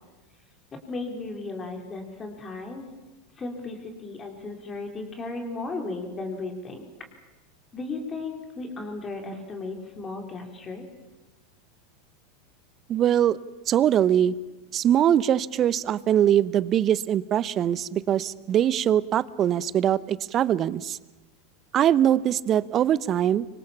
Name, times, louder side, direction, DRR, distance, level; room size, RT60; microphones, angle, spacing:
voice 1, 0.7-2.9 3.4-6.9 7.7-10.8, left 3 dB, 25° left, 4 dB, 4.3 m, -35 dB
voice 2, 12.9-13.4 13.7-14.3 14.7-21.0 21.7-23.5, right 10 dB, 35° right, 20 dB, 0.8 m, -22 dB
25.5 x 24.5 x 7.3 m, 1.1 s
figure-of-eight pair, 85°, 0 cm